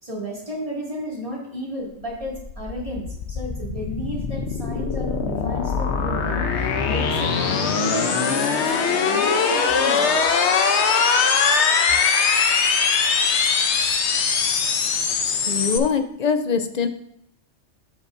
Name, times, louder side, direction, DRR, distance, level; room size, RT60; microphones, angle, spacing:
voice 1, 0.0-10.2, equal, 30° right, -4 dB, 2.3 m, -33 dB
sound 1, 2.0-15.8, left 5 dB, 70° left, 1.0 m, -21 dB
voice 2, 15.5-16.9, left 6 dB, 50° left, 8 dB, 0.5 m, -22 dB
12.0 x 5.9 x 2.6 m, 0.74 s
omnidirectional pair, 1.2 m